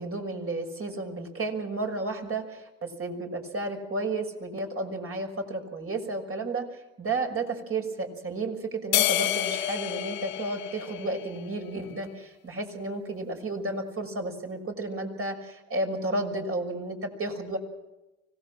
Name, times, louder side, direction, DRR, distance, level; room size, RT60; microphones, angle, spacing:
voice 1, 0.0-17.6, right 2 dB, 35° right, 3 dB, 6.3 m, -32 dB
sound 1, 8.9-11.5, left 13 dB, 75° left, 2.0 m, -28 dB
25.0 x 18.5 x 7.6 m, 0.98 s
hypercardioid pair, 70°, 40 cm